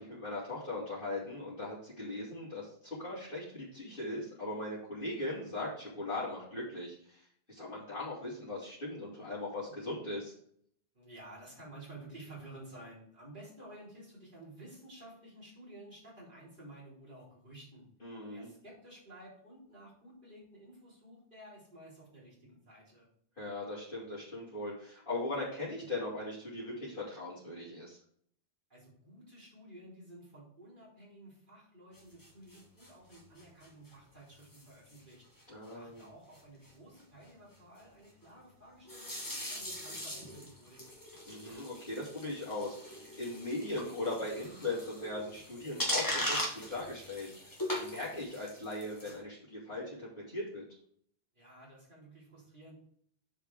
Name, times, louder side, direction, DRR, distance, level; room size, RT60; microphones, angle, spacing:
voice 1, 0.0-10.3 18.0-18.5 23.4-28.0 35.5-36.1 41.3-50.6, left 2 dB, 55° left, -10 dB, 3.0 m, -39 dB
voice 2, 10.9-17.9 18.3-23.1 28.7-35.2 35.7-40.8 51.3-52.7, right 1 dB, 50° right, -7 dB, 4.1 m, -53 dB
sound 1, 31.9-33.9 34.4-34.6 34.9-35.1 35.4-35.5 35.7-35.8 36.0-36.1 36.3-36.7 38.8-49.2, equal, 20° left, 1.8 m, -40 dB
7.6 x 5.0 x 4.8 m, 0.63 s
omnidirectional pair, 1.1 m